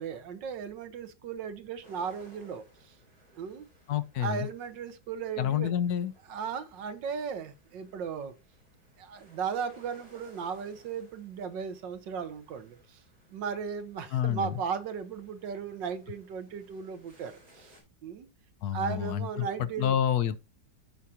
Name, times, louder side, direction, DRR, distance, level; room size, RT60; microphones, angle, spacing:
voice 1, 0.0-3.0 3.3-3.7 4.2-5.7 6.3-8.3 9.0-13.0 13.3-17.8 18.0-18.3 18.7-19.9, right 6 dB, 90° right, 1.7 m, -36 dB
sound 1, 1.8-17.8, right 1 dB, 55° right, 4.1 m, -62 dB
voice 2, 3.9-4.5 5.4-6.1 14.1-14.5 18.6-20.4, left 10 dB, 70° left, 1.2 m, -28 dB
14.0 x 4.8 x 2.8 m
omnidirectional pair, 1.9 m